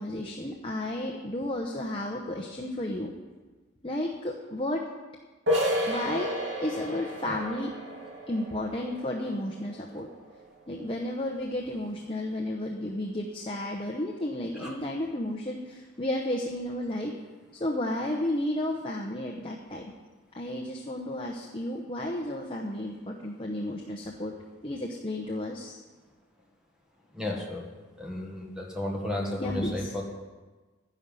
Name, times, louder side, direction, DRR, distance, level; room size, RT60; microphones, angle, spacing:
voice 1, 0.0-3.1 3.8-4.8 5.9-6.3 6.6-7.7 8.3-10.1 10.7-17.1 17.6-19.9 20.3-24.3 24.6-25.8 29.4-30.0, left 1 dB, 25° left, 0 dB, 0.9 m, -32 dB
sound 1, 5.5-10.9, equal, 55° right, 2.4 m, -32 dB
voice 2, 27.1-27.7 28.0-30.0, left 1 dB, 5° right, -1 dB, 1.6 m, -33 dB
12.0 x 10.5 x 5.6 m, 1.3 s
head